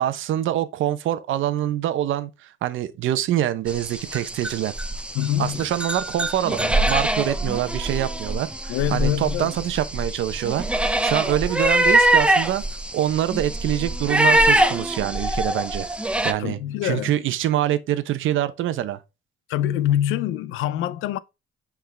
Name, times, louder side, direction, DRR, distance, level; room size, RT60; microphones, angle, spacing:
voice 1, 0.0-4.7 5.4-12.6 12.9-15.9 16.2-19.0, right 12 dB, 80° right, 0.9 m, -25 dB
sound 1, 3.7-16.3, right 1 dB, 5° right, 0.8 m, -23 dB
voice 2, 5.1-5.6 8.7-9.5 16.4-17.2 19.5-21.2, left 11 dB, 85° left, 0.5 m, -24 dB
5.9 x 4.8 x 3.5 m
cardioid pair, 90°, 20 cm